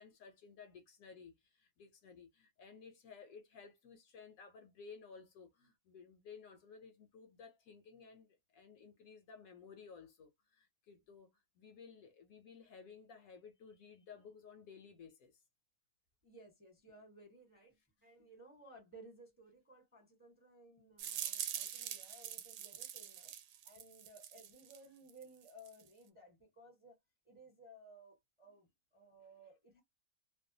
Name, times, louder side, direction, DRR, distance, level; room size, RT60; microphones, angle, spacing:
voice 1, 0.0-15.4, left 5 dB, 70° left, 0.9 m, -56 dB
voice 2, 16.2-23.3 23.6-27.0 27.2-29.8, right 1 dB, 10° right, 0.7 m, -59 dB
sound 1, 21.0-24.8 25.1-25.9, right 10 dB, 90° right, 1.1 m, -44 dB
2.6 x 2.2 x 2.6 m
omnidirectional pair, 1.7 m